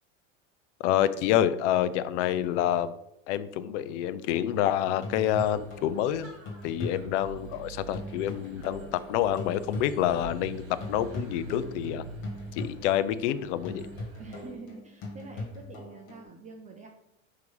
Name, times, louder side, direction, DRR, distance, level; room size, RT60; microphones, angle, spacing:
voice 1, 0.8-2.9 3.3-6.3 6.6-12.1 12.5-13.9, left 11 dB, 65° left, 14 dB, 0.6 m, -27 dB
sound 1, 4.3-10.6 10.8-16.2, left 2 dB, 50° left, 2.0 m, -41 dB
sound 2, 5.3-14.5, right 5 dB, 35° right, 1.9 m, -46 dB
voice 2, 14.2-16.9, right 4 dB, 20° right, 2 dB, 0.5 m, -46 dB
5.9 x 3.3 x 5.3 m, 0.80 s
supercardioid pair, 130°, 38 cm